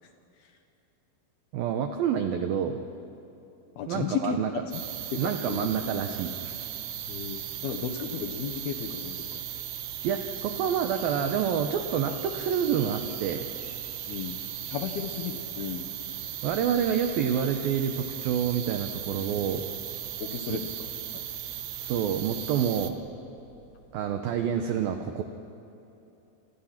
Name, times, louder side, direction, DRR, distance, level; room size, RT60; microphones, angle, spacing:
voice 1, 1.5-2.8 3.9-4.5 5.2-6.7 10.0-13.5 16.4-19.6 21.8-23.0 23.9-25.2, right 8 dB, 85° right, 6 dB, 2.0 m, -28 dB
voice 2, 3.8-4.4 4.7-4.8 5.1-5.7 7.0-9.4 14.1-14.4 14.7-15.9 20.2-20.6 21.1-21.2, left 8 dB, 70° left, 5 dB, 2.6 m, -34 dB
sound 1, 4.7-22.9, right 11 dB, 70° right, 2.6 m, -37 dB
sound 2, 7.1-24.0, right 3 dB, 35° right, 2.9 m, -56 dB
29.0 x 26.5 x 5.9 m, 2.9 s
omnidirectional pair, 5.6 m